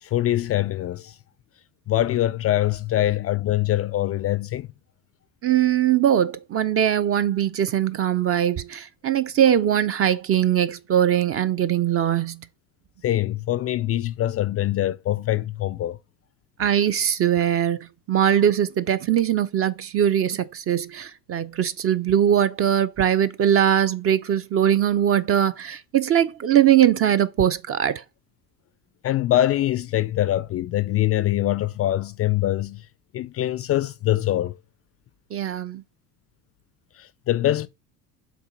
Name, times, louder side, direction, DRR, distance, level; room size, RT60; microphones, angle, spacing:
voice 1, 0.0-1.2 1.9-4.7 13.0-16.0 29.0-32.9 33.1-34.6 36.9-37.7, left 14 dB, 35° left, 0.4 m, -23 dB
voice 2, 5.4-12.5 16.6-28.0 35.3-35.8, right 10 dB, 30° right, 0.5 m, -21 dB
6.0 x 3.8 x 5.0 m
hypercardioid pair, 75°, 47 cm